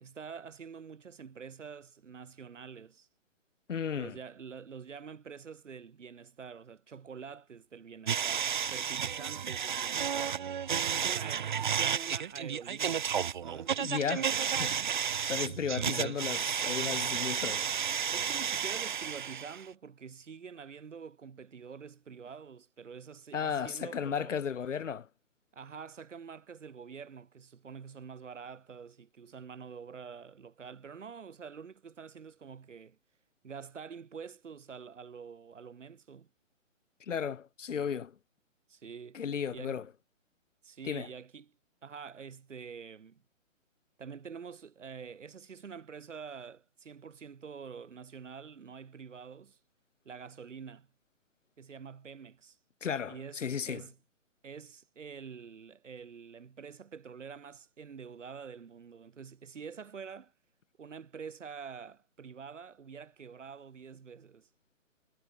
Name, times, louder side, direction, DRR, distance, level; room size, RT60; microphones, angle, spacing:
voice 1, 0.0-3.1 3.9-10.4 10.9-13.1 13.4-14.5 18.1-24.3 25.5-33.0 33.4-36.3 38.7-39.2 39.5-39.8 40.6-41.5 41.8-43.2 44.0-49.6 50.1-50.9 51.6-52.6 53.1-53.9 54.4-60.3 60.8-64.5, right 6 dB, 65° right, 3.8 m, -47 dB
voice 2, 3.7-4.1 13.8-14.3 14.5-14.8 15.2-17.7 23.3-25.1 37.0-38.1 39.1-39.9 40.8-41.1 52.8-53.9, left 7 dB, 70° left, 1.3 m, -34 dB
sound 1, 8.1-19.7, right 8 dB, 35° right, 0.7 m, -32 dB
hypercardioid pair, 155°, 39 cm